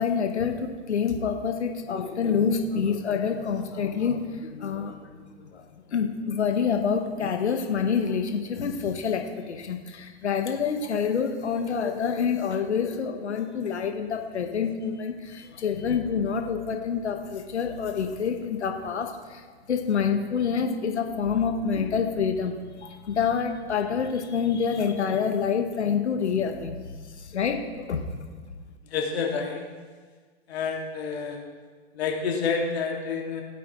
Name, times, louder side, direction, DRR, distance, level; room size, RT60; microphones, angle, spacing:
voice 1, 0.0-26.8 27.2-28.1, left 6 dB, 85° left, 5 dB, 1.1 m, -27 dB
voice 2, 28.9-29.6 30.5-31.4 32.0-33.4, left 5 dB, 70° left, 0 dB, 2.2 m, -28 dB
17.0 x 8.4 x 3.1 m, 1.5 s
hypercardioid pair, 105°, 33 cm